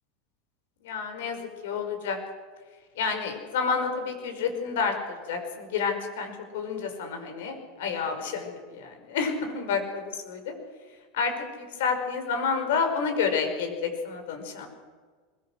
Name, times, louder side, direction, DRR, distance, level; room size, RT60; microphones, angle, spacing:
voice 1, 0.8-1.4 1.6-2.2 3.0-10.5 11.1-14.7, left 5 dB, 80° left, 5 dB, 5.7 m, -29 dB
23.0 x 22.0 x 6.5 m, 1.5 s
supercardioid pair, 150°, 0 cm